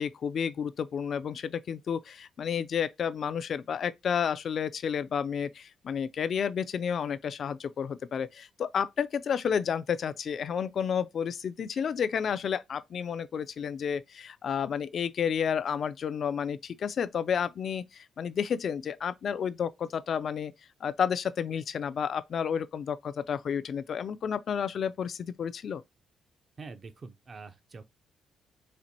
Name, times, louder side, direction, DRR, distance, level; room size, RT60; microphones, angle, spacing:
voice 1, 0.0-20.5 20.8-25.8, left 7 dB, 55° left, 0.3 m, -31 dB
voice 2, 26.6-27.9, right 4 dB, 40° right, 0.5 m, -45 dB
4.2 x 2.5 x 2.7 m
cardioid pair, 90°, 0 cm